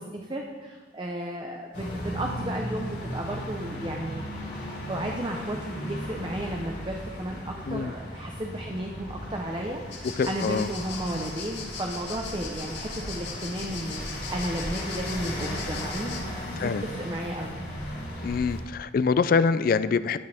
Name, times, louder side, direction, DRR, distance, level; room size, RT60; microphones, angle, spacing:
voice 1, 0.0-4.2 4.9-17.6, right 1 dB, 25° right, 1 dB, 0.8 m, -34 dB
sound 1, 1.7-18.6, equal, 90° left, 3.7 m, -36 dB
sound 2, 9.9-16.2, left 4 dB, 75° left, 2.0 m, -39 dB
voice 2, 10.2-10.7 16.6-16.8 18.2-20.2, left 5 dB, 50° left, 15 dB, 0.3 m, -24 dB
13.5 x 9.4 x 3.5 m, 1.4 s
head